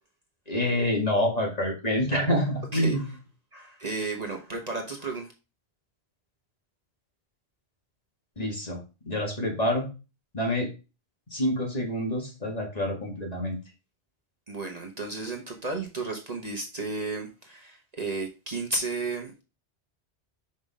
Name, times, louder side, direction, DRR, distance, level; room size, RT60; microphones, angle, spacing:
voice 1, 0.5-3.0 8.4-8.8 9.0-9.9 10.3-10.7 11.3-13.6, left 1 dB, 40° left, -1 dB, 2.1 m, -27 dB
voice 2, 2.7-3.0 3.5-5.3 14.5-19.4, right 3 dB, 40° right, 2 dB, 1.2 m, -33 dB
6.0 x 5.4 x 3.6 m, 0.30 s
omnidirectional pair, 1.1 m